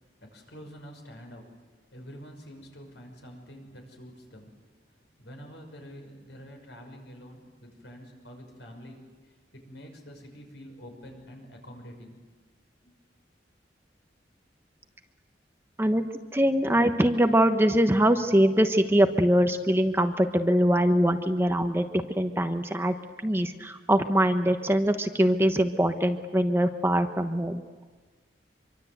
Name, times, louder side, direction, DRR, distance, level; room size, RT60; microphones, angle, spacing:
voice 1, 0.2-4.6 4.8-9.1 9.5-12.2 12.8-12.9, equal, 75° left, 3 dB, 6.1 m, -47 dB
voice 2, 15.8-21.9 22.2-22.9 23.2-27.6, equal, 15° right, 7 dB, 1.1 m, -23 dB
26.0 x 24.0 x 8.0 m, 1.4 s
head